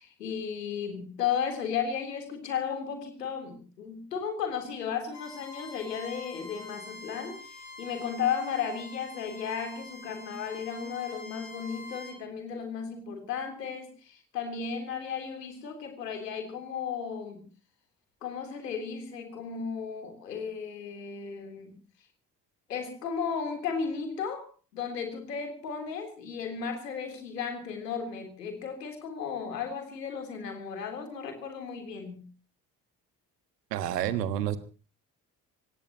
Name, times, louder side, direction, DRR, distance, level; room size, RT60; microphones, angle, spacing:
voice 1, 0.0-17.4 18.2-21.7 22.7-24.5 24.7-32.3, left 6 dB, 80° left, 5 dB, 3.6 m, -34 dB
Bowed string instrument, 5.1-12.2, left 3 dB, 35° left, 7.6 m, -46 dB
voice 2, 33.7-34.6, right 11 dB, 75° right, 13 dB, 1.5 m, -29 dB
26.0 x 16.5 x 3.0 m, 0.38 s
figure-of-eight pair, 40°, 48 cm